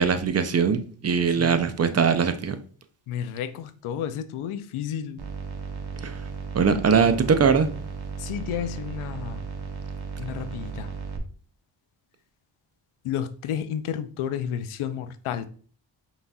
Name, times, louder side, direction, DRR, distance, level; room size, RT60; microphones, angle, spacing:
voice 1, 0.0-2.6 6.0-6.2 6.5-7.7, right 6 dB, 30° right, 0.5 m, -21 dB
voice 2, 3.1-5.2 8.2-9.4 10.2-10.9 13.0-15.5, left 9 dB, 80° left, 0.6 m, -31 dB
sound 1, 5.2-11.2, right 5 dB, 50° right, 0.9 m, -35 dB
5.5 x 2.8 x 2.3 m
supercardioid pair, 50°, 50 cm